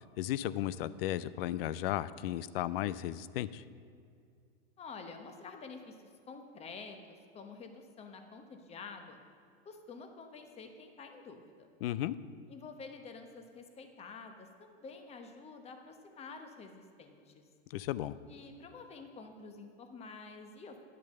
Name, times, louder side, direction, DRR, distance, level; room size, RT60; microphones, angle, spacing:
voice 1, 0.2-3.6 11.8-12.2 17.7-18.1, left 13 dB, 65° left, 17 dB, 0.5 m, -35 dB
voice 2, 4.8-6.0 6.3-9.2 9.6-11.7 12.5-17.4 18.3-20.8, left 4 dB, 20° left, 6 dB, 1.0 m, -49 dB
10.5 x 6.6 x 6.7 m, 2.3 s
supercardioid pair, 135°, 31 cm